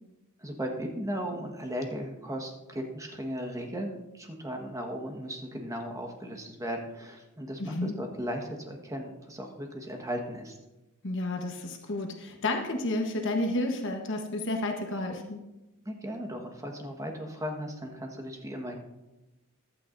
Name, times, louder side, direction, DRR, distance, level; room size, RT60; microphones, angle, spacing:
voice 1, 0.4-10.6 15.8-18.8, equal, 15° right, 3 dB, 1.4 m, -36 dB
voice 2, 7.6-8.0 11.0-15.4, left 2 dB, 60° left, 3 dB, 1.1 m, -31 dB
15.0 x 12.0 x 2.6 m, 1.0 s
head